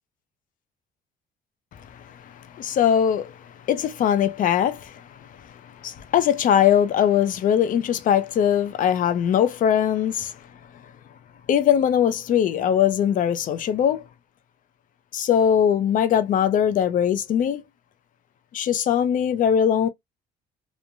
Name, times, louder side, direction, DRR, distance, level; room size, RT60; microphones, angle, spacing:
voice 1, 2.5-3.3 3.7-5.0 5.8-10.3 11.5-14.0 15.1-17.6 18.5-19.9, left 9 dB, 50° left, 0.5 m, -21 dB
3.0 x 2.1 x 2.5 m
cardioid pair, 110°, 17 cm